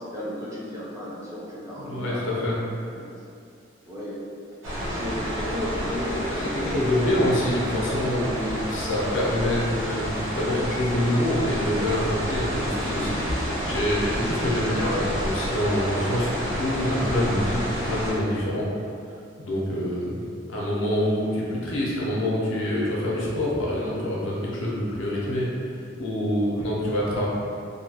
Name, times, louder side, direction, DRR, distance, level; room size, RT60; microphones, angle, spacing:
voice 1, 0.0-2.4 2.9-3.2 3.9-4.2 4.8-7.3 26.5-26.8, equal, 15° right, -7 dB, 0.4 m, -34 dB
voice 2, 1.8-2.7 6.3-18.7 19.4-20.2 20.5-25.5 26.0-27.3, left 1 dB, 75° left, -5 dB, 0.6 m, -26 dB
sound 1, 4.6-18.1, equal, 80° right, 0.8 m, -30 dB
2.6 x 2.2 x 2.8 m, 2.5 s
head